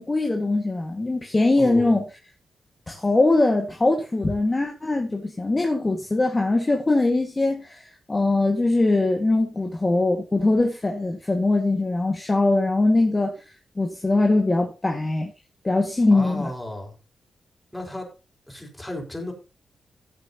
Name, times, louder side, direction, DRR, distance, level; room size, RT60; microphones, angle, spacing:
voice 1, 0.0-2.0 2.9-13.3 13.8-15.3 15.6-16.5, left 2 dB, 30° left, 1.8 m, -22 dB
voice 2, 1.6-2.0 16.1-16.9 17.7-18.1 18.5-19.3, left 1 dB, 10° left, 5.0 m, -33 dB
16.0 x 8.0 x 2.9 m
cardioid pair, 60°, 0 cm